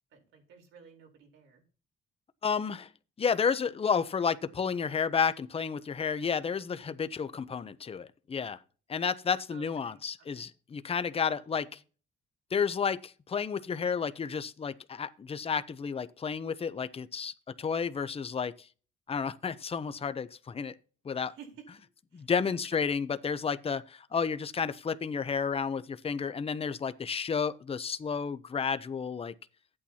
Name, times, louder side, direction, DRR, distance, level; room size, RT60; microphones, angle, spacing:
voice 1, 0.1-1.6 9.5-10.5 11.2-11.8 21.1-22.8, right 6 dB, 80° right, 3.9 m, -54 dB
voice 2, 2.4-2.9 3.2-8.6 8.9-11.7 12.5-18.7 19.1-20.7 21.0-21.3 22.1-29.3, left 6 dB, 30° left, 0.7 m, -31 dB
13.0 x 8.7 x 2.8 m
cardioid pair, 90°, 20 cm